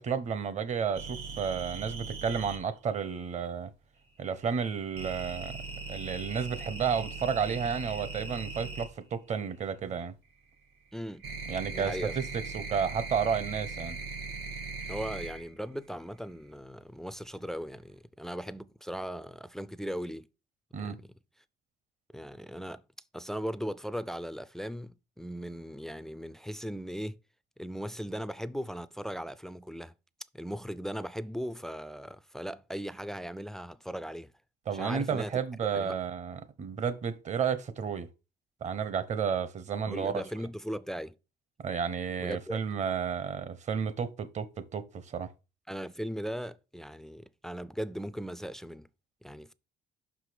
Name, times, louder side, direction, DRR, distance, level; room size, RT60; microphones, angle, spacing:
voice 1, 0.0-3.7 4.2-5.6 5.9-10.1 11.5-14.0 20.7-21.0 34.7-38.1 38.6-40.1 41.6-45.3, right 6 dB, 45° right, 0.8 m, -32 dB
sound 1, 0.9-2.6 5.0-8.9 10.3-15.5 15.8-16.4, right 3 dB, 80° right, 2.5 m, -39 dB
voice 2, 10.9-11.2 11.7-12.2 14.9-20.3 20.8-21.1 22.1-22.8 23.1-27.2 27.6-29.9 30.3-34.3 34.7-35.3 35.7-36.0 39.9-41.1 42.2-42.6 45.7-48.9 49.2-49.5, equal, 5° left, 0.3 m, -38 dB
5.7 x 4.9 x 5.0 m
cardioid pair, 110°, 17 cm